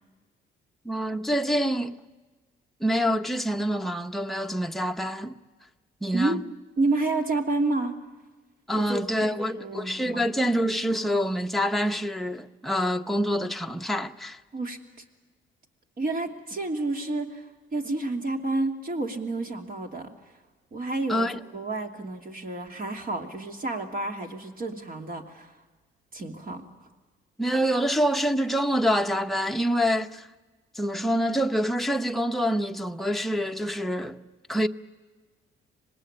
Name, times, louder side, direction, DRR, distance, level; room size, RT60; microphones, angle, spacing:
voice 1, 0.8-2.0 2.8-5.4 6.0-6.4 8.7-14.4 21.1-21.4 27.4-30.3 30.7-34.2 34.5-34.7, equal, ahead, 0.9 m, -26 dB
voice 2, 6.1-6.4 6.8-8.0 8.7-10.3 14.5-14.8 16.0-20.1 20.7-25.5 26.1-26.6, right 2 dB, 45° right, 2.9 m, -30 dB
25.5 x 19.5 x 8.9 m
cardioid pair, 90°, 20 cm